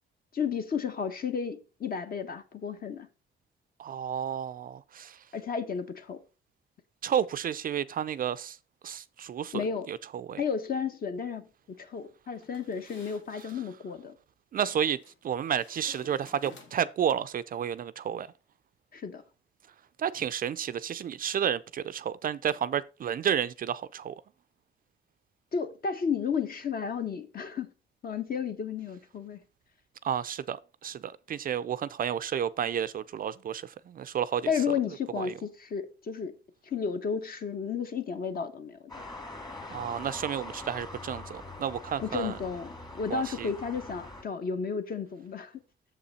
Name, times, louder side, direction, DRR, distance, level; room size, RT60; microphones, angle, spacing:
voice 1, 0.3-3.1 5.3-6.2 9.5-9.9 10.4-11.5 11.8-14.2 18.9-19.2 25.5-27.7 28.0-29.4 34.5-36.3 36.7-38.8 42.0-45.6, left 6 dB, 50° left, 1.0 m, -32 dB
voice 2, 3.8-5.2 7.0-8.6 8.8-10.4 14.5-15.0 15.2-18.3 20.0-24.1 30.0-30.6 30.8-34.5 35.2-35.3 39.7-42.3 43.1-43.5, right 9 dB, 45° right, 0.4 m, -31 dB
sound 1, 12.4-13.6 14.7-15.2 15.5-17.0, left 4 dB, 70° left, 1.4 m, -53 dB
sound 2, 38.9-44.2, left 2 dB, 20° left, 1.6 m, -43 dB
6.7 x 5.7 x 4.1 m
cardioid pair, 90°, 20 cm